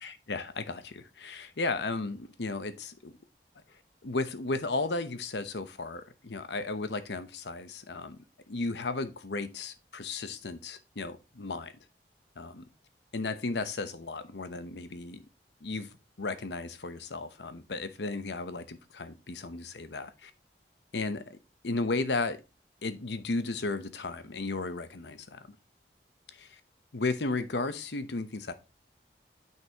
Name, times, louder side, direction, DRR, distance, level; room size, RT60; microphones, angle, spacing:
voice 1, 0.0-3.1 4.0-8.2 8.5-11.7 12.4-12.7 13.1-15.2 15.6-15.9 16.2-20.3 20.9-21.4 21.6-22.4 22.8-25.4 26.3-26.6 26.9-28.5, left 3 dB, 85° left, 0.9 m, -34 dB
9.2 x 5.8 x 2.9 m
head